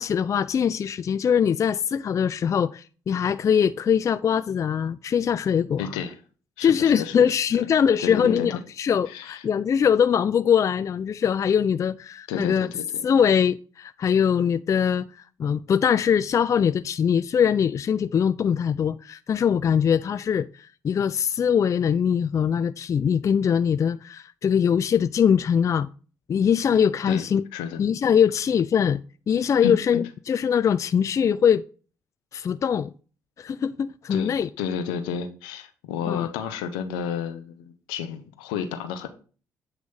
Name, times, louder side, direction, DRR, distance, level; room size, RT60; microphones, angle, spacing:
voice 1, 0.0-5.9 6.6-12.7 13.0-25.9 26.3-27.4 27.8-29.0 29.3-31.6 32.3-32.9 33.4-34.5 36.1-36.3, left 7 dB, 40° left, 0.3 m, -22 dB
voice 2, 5.8-6.1 6.6-7.3 8.0-8.6 9.1-9.4 12.3-13.0 27.1-27.3 27.5-27.8 29.6-29.7 34.1-39.1, left 7 dB, 80° left, 0.9 m, -31 dB
8.0 x 3.1 x 5.4 m
hypercardioid pair, 50°, 8 cm